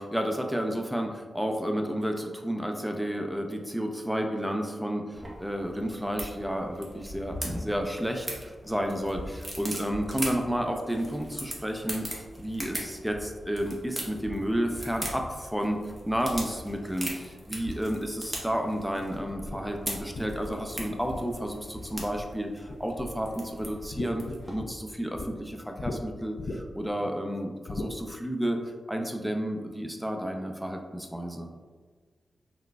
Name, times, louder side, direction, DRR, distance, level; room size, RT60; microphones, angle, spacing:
voice 1, 0.0-28.6 28.9-31.5, equal, ahead, 3 dB, 0.4 m, -31 dB
sound 1, 5.1-24.5, right 1 dB, 25° right, 0.8 m, -40 dB
sound 2, 19.1-22.4 22.7-23.3 23.6-25.3 25.8-26.0 26.4-26.9 27.7-27.9, left 2 dB, 65° left, 0.3 m, -38 dB
3.7 x 2.4 x 2.2 m, 1.4 s
cardioid pair, 45°, 0 cm